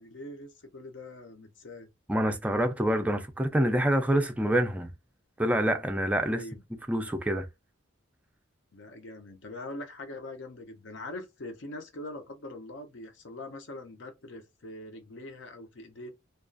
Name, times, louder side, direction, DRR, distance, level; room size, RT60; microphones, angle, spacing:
voice 1, 0.0-1.9 6.3-6.6 8.7-16.1, left 2 dB, 70° left, 0.7 m, -43 dB
voice 2, 2.1-4.9 5.4-6.4 6.9-7.5, right 1 dB, 5° right, 0.4 m, -26 dB
2.3 x 2.3 x 2.5 m
head